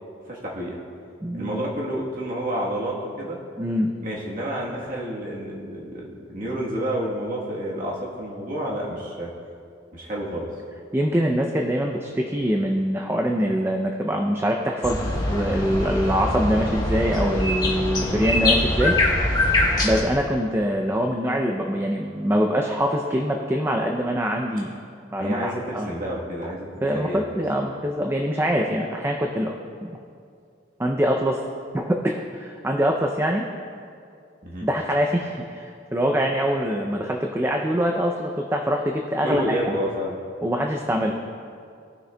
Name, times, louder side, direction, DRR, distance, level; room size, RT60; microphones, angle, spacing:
voice 1, 0.2-0.7 1.3-3.4 4.0-9.3 9.9-10.5 25.2-27.2 34.4-34.7 39.2-40.2, right 1 dB, 45° right, -4 dB, 1.3 m, -29 dB
voice 2, 1.2-1.6 3.6-3.9 10.9-19.0 19.8-24.7 25.1-25.9 26.8-29.5 29.8-30.0 30.8-31.4 31.7-33.4 34.6-39.7 40.4-41.2, equal, 15° right, 1 dB, 0.4 m, -24 dB
sound 1, 14.8-20.0, left 1 dB, 20° left, 1.1 m, -23 dB
18.0 x 6.3 x 2.2 m, 2.4 s
head